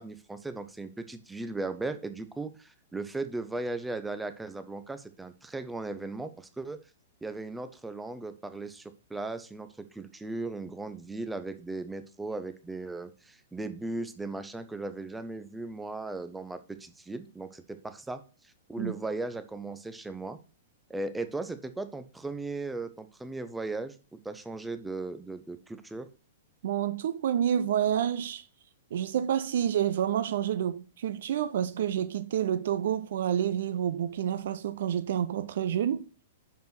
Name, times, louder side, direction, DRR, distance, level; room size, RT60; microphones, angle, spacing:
voice 1, 0.0-6.8 7.2-20.4 20.9-26.1, right 2 dB, 5° right, 0.6 m, -37 dB
voice 2, 26.6-28.4 28.9-36.0, right 9 dB, 55° right, 0.5 m, -28 dB
6.0 x 5.2 x 5.9 m
figure-of-eight pair, 105°, 0 cm